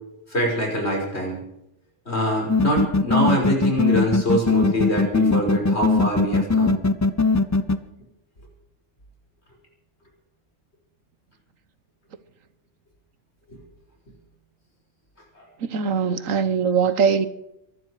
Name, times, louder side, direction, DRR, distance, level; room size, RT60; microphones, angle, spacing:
voice 1, 0.3-1.4 2.1-6.8 15.4-15.5, equal, 55° left, -1 dB, 6.0 m, -24 dB
sound 1, 2.5-7.8, left 3 dB, 20° left, 0.5 m, -19 dB
voice 2, 15.6-17.3, right 6 dB, 90° right, 13 dB, 1.4 m, -21 dB
23.0 x 12.5 x 4.9 m, 0.84 s
omnidirectional pair, 1.3 m